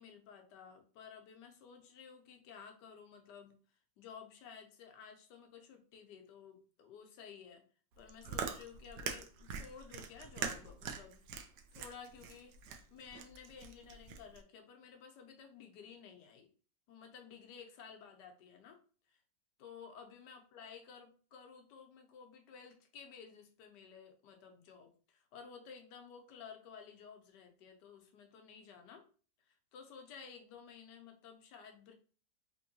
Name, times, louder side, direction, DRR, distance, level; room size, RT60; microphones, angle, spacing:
voice 1, 0.0-3.6 4.0-7.6 8.0-11.2 11.7-16.5 16.9-18.8 19.1-19.2 19.6-29.0 29.5-31.9, left 6 dB, 80° left, 5 dB, 1.3 m, -54 dB
Chewing mastication, 7.9-14.4, right 6 dB, 75° right, 1.1 m, -43 dB
3.5 x 3.1 x 2.7 m, 0.40 s
omnidirectional pair, 1.9 m